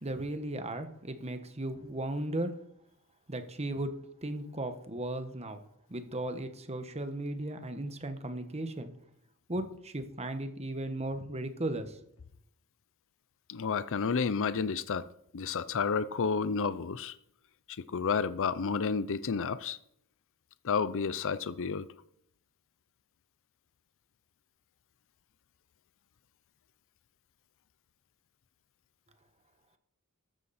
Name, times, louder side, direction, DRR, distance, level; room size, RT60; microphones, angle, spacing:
voice 1, 0.0-2.5 3.3-3.9 4.2-5.6 5.9-8.9 9.5-12.0, right 1 dB, 30° right, 1.4 m, -36 dB
voice 2, 13.5-15.1 15.3-17.2 17.7-19.8 20.6-21.9, left 5 dB, 60° left, 0.5 m, -31 dB
13.5 x 13.0 x 4.3 m
head